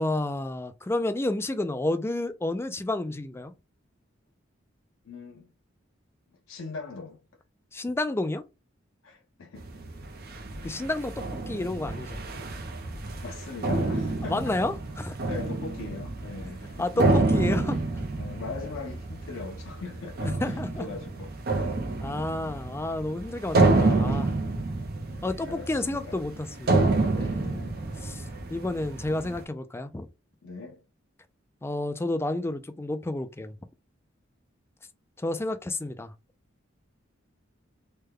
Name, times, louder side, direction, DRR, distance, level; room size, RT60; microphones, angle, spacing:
voice 1, 0.0-3.5 7.7-8.4 10.6-12.2 14.2-15.1 16.8-17.8 20.2-20.9 21.6-24.3 25.2-27.5 28.0-28.2 28.5-30.1 31.6-33.5 35.2-36.1, left 2 dB, 15° left, 0.4 m, -30 dB
voice 2, 5.1-5.5 6.5-7.2 9.0-9.9 13.2-14.7 15.3-17.1 17.5-17.8 18.2-21.3 22.4-22.7 25.4-26.2 27.4-27.8 30.4-30.8, left 4 dB, 75° left, 0.5 m, -41 dB
sound 1, 9.6-29.4, right 2 dB, 50° right, 0.7 m, -28 dB
3.3 x 2.2 x 3.4 m
head